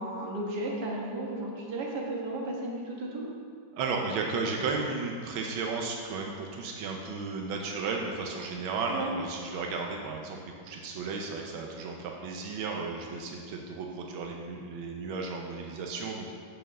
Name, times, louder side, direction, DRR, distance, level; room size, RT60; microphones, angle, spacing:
voice 1, 0.0-3.2 8.9-9.1, right 1 dB, 60° right, -2 dB, 1.9 m, -34 dB
voice 2, 3.8-16.3, right 4 dB, 90° right, 1 dB, 1.6 m, -34 dB
6.5 x 6.3 x 6.7 m, 2.1 s
omnidirectional pair, 2.1 m